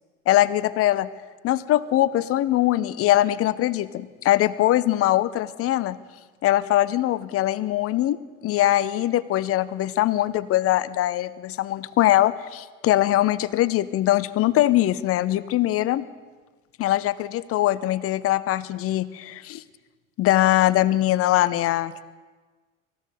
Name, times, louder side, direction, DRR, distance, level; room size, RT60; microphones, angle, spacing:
voice 1, 0.3-1.1 1.4-6.0 6.4-8.2 8.4-16.0 16.8-19.6 20.2-22.0, left 14 dB, 35° left, 17 dB, 0.8 m, -22 dB
24.0 x 14.5 x 4.0 m, 1.4 s
figure-of-eight pair, 75°, 42 cm